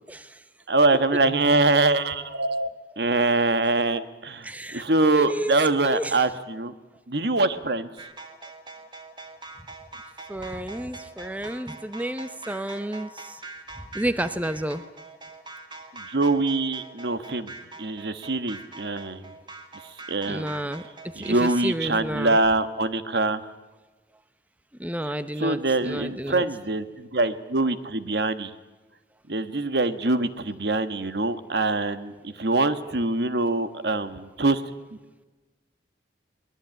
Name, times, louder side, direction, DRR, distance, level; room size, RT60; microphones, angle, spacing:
voice 1, 0.1-0.4 1.3-1.6 4.4-4.8 5.1-5.6 5.8-6.2 10.3-13.4 13.9-14.8 20.3-22.4 24.8-26.5, right 1 dB, 10° right, 12 dB, 0.8 m, -31 dB
voice 2, 0.7-2.7 3.0-6.7 7.1-7.9 15.9-17.5 17.8-19.2 20.1-20.5 21.2-23.5 25.4-28.5 29.3-34.6 34.9-35.0, right 2 dB, 75° right, 11 dB, 1.3 m, -24 dB
sound 1, 8.0-21.6, right 3 dB, 25° right, 2.2 m, -43 dB
23.0 x 20.0 x 9.0 m, 1.2 s
head